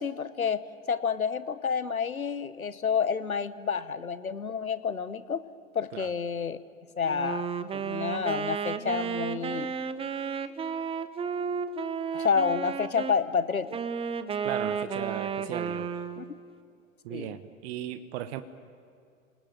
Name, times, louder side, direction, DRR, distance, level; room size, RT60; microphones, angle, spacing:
voice 1, 0.0-5.4 5.7-6.6 7.0-9.7 12.1-13.8 16.2-16.3 17.1-17.4, left 6 dB, 90° left, 15 dB, 1.1 m, -29 dB
Wind instrument woodwind instrument, 7.0-13.2 13.7-16.3, right 6 dB, 15° right, 0.9 m, -33 dB
voice 2, 14.4-15.9 17.0-18.4, right 12 dB, 50° right, 10 dB, 1.2 m, -36 dB
30.0 x 19.5 x 9.2 m, 2.3 s
figure-of-eight pair, 100°, 41 cm